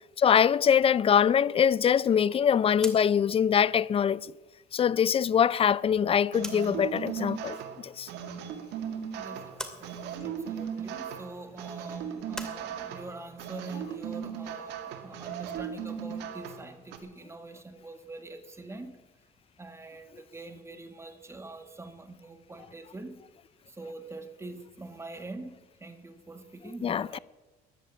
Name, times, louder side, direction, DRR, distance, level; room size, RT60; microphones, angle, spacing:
voice 1, 0.2-4.3 4.7-7.6 7.8-8.1 26.8-27.2, left 8 dB, 35° left, 0.5 m, -23 dB
sound 1, 2.8-6.9 7.2-8.2 8.6-12.6, equal, 5° left, 2.4 m, -45 dB
sound 2, 6.3-17.0, right 8 dB, 85° right, 2.1 m, -37 dB
voice 2, 9.2-19.0 19.6-23.2 23.7-27.2, right 2 dB, 15° right, 1.9 m, -44 dB
14.5 x 11.0 x 8.5 m
cardioid pair, 110°, 17 cm